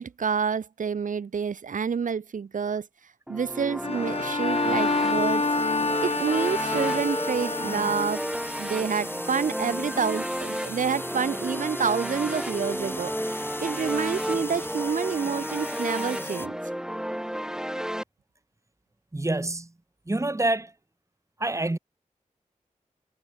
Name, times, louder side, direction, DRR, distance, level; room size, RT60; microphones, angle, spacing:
voice 1, 0.0-2.9 3.3-5.8 6.0-8.2 8.6-16.5, right 6 dB, 75° right, 1.0 m, -28 dB
sound 1, 3.3-18.0, equal, 5° right, 3.3 m, -32 dB
Bowed string instrument, 3.8-8.4, left 3 dB, 45° left, 3.2 m, -28 dB
sound 2, 4.0-16.5, left 1 dB, 15° left, 1.7 m, -40 dB
voice 2, 19.1-19.7 20.1-20.7 21.4-21.8, right 2 dB, 20° right, 2.0 m, -26 dB
cardioid pair, 50°, 13 cm